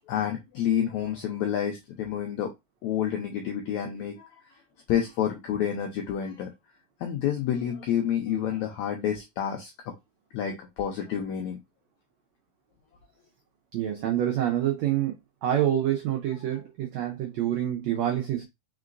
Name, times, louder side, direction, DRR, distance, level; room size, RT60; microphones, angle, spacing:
voice 1, 0.1-2.5 2.8-4.3 4.9-6.5 7.0-9.7 10.3-11.6, left 9 dB, 90° left, 1.6 m, -29 dB
voice 2, 13.7-15.1 15.4-18.4, right 11 dB, 85° right, 1.5 m, -27 dB
4.9 x 3.7 x 2.5 m
omnidirectional pair, 4.1 m